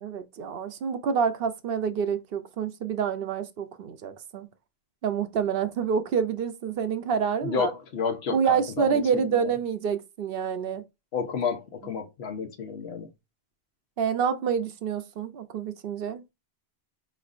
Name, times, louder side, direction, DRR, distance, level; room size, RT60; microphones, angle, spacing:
voice 1, 0.0-4.5 5.0-7.7 8.3-10.8 14.0-16.2, right 7 dB, 65° right, 0.7 m, -27 dB
voice 2, 7.4-9.4 11.1-13.1, left 6 dB, 75° left, 1.0 m, -31 dB
5.0 x 3.1 x 2.4 m
omnidirectional pair, 1.1 m